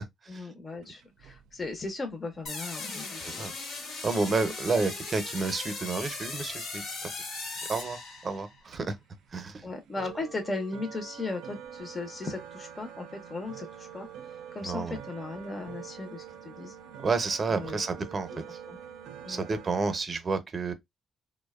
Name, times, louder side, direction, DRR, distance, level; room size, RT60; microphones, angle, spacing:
voice 1, 0.3-3.5 9.6-14.1 14.5-16.7 17.5-17.8 18.3-18.8 19.2-19.5, left 3 dB, 30° left, 0.5 m, -37 dB
sound 1, 0.8-20.0, right 9 dB, 85° right, 0.4 m, -47 dB
sound 2, 2.5-8.6, left 3 dB, 65° left, 0.9 m, -38 dB
voice 2, 3.2-3.5 4.0-7.1 7.7-9.0 9.3-9.6 14.6-15.0 17.0-18.6 19.3-20.7, right 4 dB, 35° right, 0.6 m, -30 dB
2.6 x 2.1 x 2.3 m
cardioid pair, 90°, 0 cm